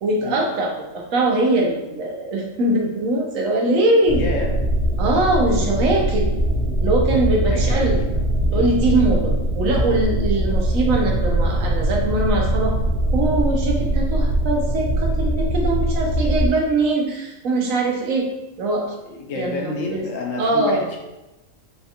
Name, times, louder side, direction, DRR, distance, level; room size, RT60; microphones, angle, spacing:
voice 1, 0.0-4.2 5.0-6.3 6.8-8.0 8.5-12.8 13.1-18.3 18.6-18.9 19.3-19.6 19.9-20.0 20.4-20.9, right 2 dB, 85° right, 0 dB, 1.1 m, -21 dB
voice 2, 4.1-4.5 7.5-8.1 11.2-11.3 19.1-21.0, left 3 dB, 80° left, 0 dB, 1.1 m, -29 dB
sound 1, 4.1-16.5, right 1 dB, 55° right, 0.7 m, -21 dB
4.2 x 2.4 x 2.7 m, 0.96 s
omnidirectional pair, 1.4 m